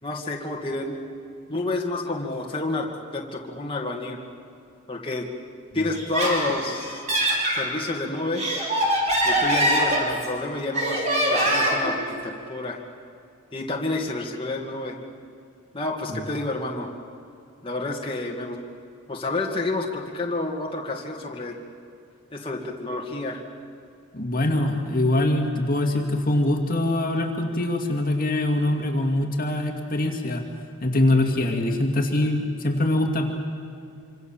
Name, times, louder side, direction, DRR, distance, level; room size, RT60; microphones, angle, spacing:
voice 1, 0.0-1.0 1.5-4.2 4.9-5.3 5.7-7.0 7.5-8.4 9.2-11.0 11.3-12.8 13.5-15.0 15.7-16.9 17.6-18.6 19.1-21.6 22.3-23.4, left 2 dB, 25° left, -1 dB, 2.2 m, -29 dB
Laughter, 5.9-7.6 8.2-10.4 10.7-11.9, right 1 dB, 30° right, 5.8 m, -23 dB
voice 2, 24.1-30.4 30.8-33.3, left 1 dB, 40° left, 2 dB, 2.2 m, -23 dB
26.0 x 26.0 x 7.3 m, 2.5 s
head